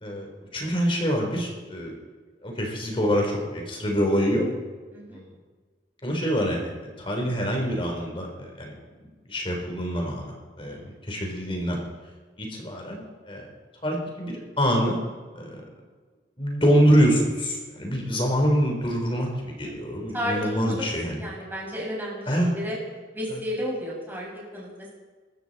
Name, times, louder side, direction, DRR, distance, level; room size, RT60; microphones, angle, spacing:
voice 1, 0.0-2.0 2.4-4.5 5.1-5.3 6.0-8.7 9.0-11.8 12.4-13.5 13.8-15.0 15.4-15.6 16.4-21.2 22.3-22.5 23.3-23.4, equal, 30° left, 1 dB, 3.5 m, -25 dB
voice 2, 19.8-20.8 21.2-22.8 23.1-24.9, equal, 10° right, -4 dB, 6.2 m, -33 dB
23.5 x 13.5 x 4.2 m, 1.4 s
head